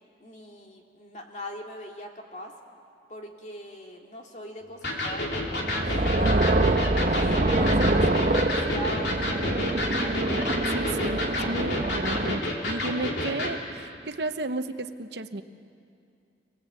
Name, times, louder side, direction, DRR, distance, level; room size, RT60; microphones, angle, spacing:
voice 1, 0.2-2.5 3.1-5.3 5.8-9.6, equal, 40° left, 1 dB, 2.5 m, -40 dB
Electric guitar, 4.8-13.6, left 1 dB, 85° left, 3.2 m, -30 dB
sound 1, 5.2-12.4, right 2 dB, 45° right, 1.0 m, -25 dB
voice 2, 6.1-6.6 10.7-15.4, right 2 dB, 75° right, 9 dB, 1.0 m, -33 dB
27.5 x 18.5 x 8.3 m, 2.5 s
head